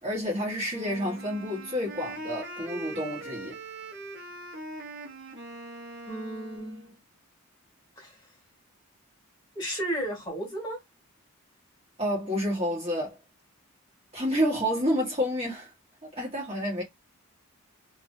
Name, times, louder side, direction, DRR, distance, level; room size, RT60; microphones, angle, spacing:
voice 1, 0.0-3.6 12.0-13.2 14.1-15.7 16.0-16.8, equal, 25° right, 1.4 m, -29 dB
Wind instrument woodwind instrument, 0.7-6.9, right 2 dB, 50° right, 0.9 m, -41 dB
voice 2, 6.1-6.9 8.0-8.2 9.5-10.8, right 1 dB, 20° left, 1.5 m, -34 dB
3.0 x 2.5 x 2.6 m
head